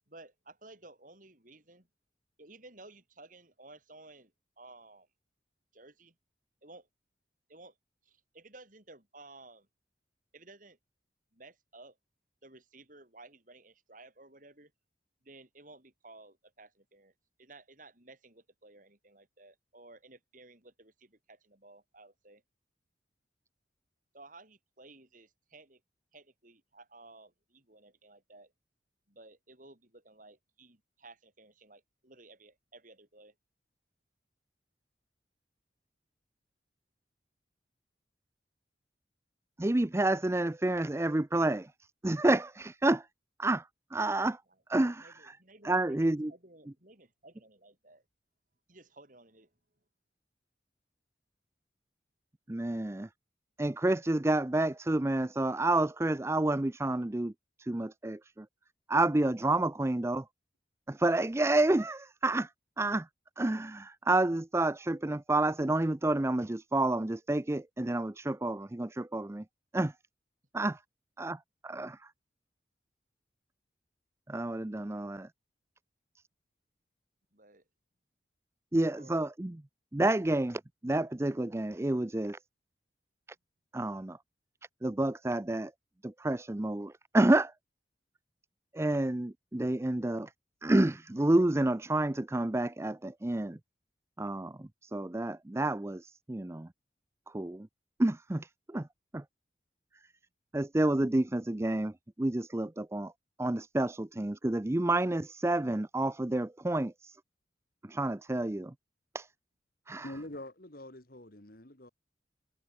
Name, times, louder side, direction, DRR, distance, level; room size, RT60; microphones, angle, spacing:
voice 1, 0.1-1.9 2.4-4.3 4.6-5.1 5.7-6.2 6.6-6.9 7.5-7.8 8.0-9.7 10.3-10.8 11.3-12.0 12.4-14.7 15.2-17.1 17.4-22.4 24.1-25.8 26.1-28.5 29.1-33.3 44.5-44.6 45.0-48.0 48.7-49.5 77.3-77.6 79.0-79.2, right 2 dB, 50° right, 7.0 m, -55 dB
voice 2, 39.6-41.7 42.0-43.0 43.4-43.6 43.9-44.4 44.7-45.1 45.6-46.3 52.5-53.1 53.6-57.3 57.7-58.2 58.9-60.2 60.9-62.5 62.8-63.0 63.4-69.4 69.7-69.9 70.5-70.8 71.2-71.4 71.6-72.0 74.3-75.3 78.7-79.5 79.9-82.4 83.7-84.2 84.8-85.7 86.0-87.5 88.7-90.3 90.6-93.6 94.2-94.5 94.9-96.7 97.3-97.7 98.0-98.5 98.7-98.8 99.1-99.2 100.5-101.9 102.2-103.1 103.4-107.1 107.9-108.7 109.1-109.3 109.9-110.0, right 2 dB, 15° right, 0.5 m, -29 dB
voice 3, 110.0-111.9, left 1 dB, 55° left, 2.7 m, -45 dB
head